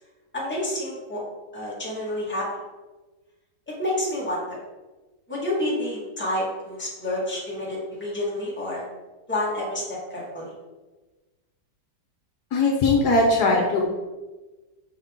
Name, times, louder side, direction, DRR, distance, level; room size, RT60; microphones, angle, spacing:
voice 1, 0.3-1.2 1.5-2.5 3.7-4.6 5.3-8.8 9.3-10.5, left 1 dB, 5° left, -6 dB, 1.5 m, -29 dB
voice 2, 12.5-13.8, left 2 dB, 70° left, 0 dB, 1.4 m, -20 dB
6.6 x 4.1 x 3.6 m, 1.2 s
omnidirectional pair, 1.9 m